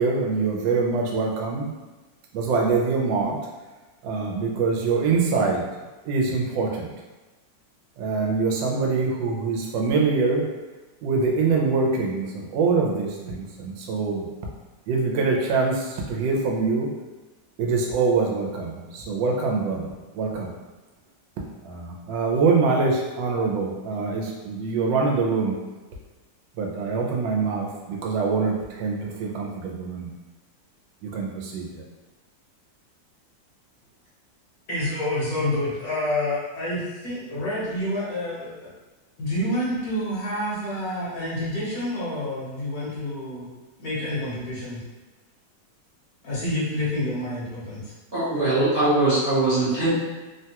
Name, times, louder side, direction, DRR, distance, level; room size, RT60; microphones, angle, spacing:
voice 1, 0.0-1.7 2.3-3.4 4.0-5.6 6.0-6.9 8.0-10.4 11.0-14.3 14.9-16.9 17.6-20.5 21.6-25.6 26.6-30.1 31.0-31.8, right 4 dB, 80° right, 0 dB, 1.3 m, -24 dB
voice 2, 34.7-38.7 39.2-43.5 43.8-44.8 46.2-47.8, left 1 dB, 60° left, -7 dB, 1.2 m, -28 dB
voice 3, 48.1-50.0, right 2 dB, 45° right, -12 dB, 0.7 m, -21 dB
3.4 x 2.2 x 2.8 m, 1.2 s
omnidirectional pair, 2.0 m